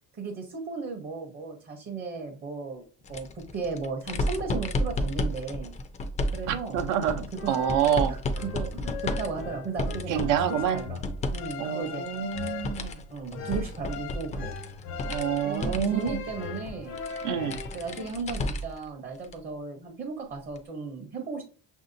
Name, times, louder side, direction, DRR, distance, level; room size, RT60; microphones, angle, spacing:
voice 1, 0.2-2.8 3.1-5.7 6.3-6.8 7.3-7.6 8.1-11.0 11.3-12.0 12.7-12.8 13.1-14.5 15.4-17.0 17.7-21.4, right 4 dB, 30° right, 1 dB, 0.7 m, -35 dB
sound 1, 3.0-11.5 11.8-18.8 19.2-19.3 20.6-20.7, left 1 dB, 25° left, 0.3 m, -33 dB
voice 2, 6.5-8.2 10.1-10.8 11.6-13.0 15.1-16.2 17.2-17.6, right 9 dB, 80° right, 9 dB, 0.7 m, -27 dB
sound 2, 7.1-18.1, left 6 dB, 85° left, 0.9 m, -39 dB
5.8 x 2.7 x 2.5 m, 0.37 s
cardioid pair, 145°, 31 cm